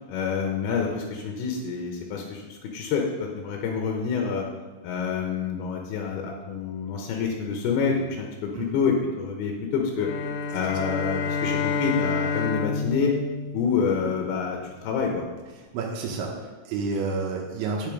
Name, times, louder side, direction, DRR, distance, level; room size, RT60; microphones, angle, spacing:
voice 1, 0.1-4.5 4.8-10.1 10.5-13.1 13.5-15.2, left 6 dB, 75° left, 1 dB, 2.5 m, -27 dB
sound 1, 10.0-14.4, left 4 dB, 90° left, 3.0 m, -29 dB
voice 2, 15.7-17.9, right 4 dB, 90° right, -2 dB, 3.5 m, -30 dB
9.0 x 7.1 x 5.1 m, 1.3 s
omnidirectional pair, 5.3 m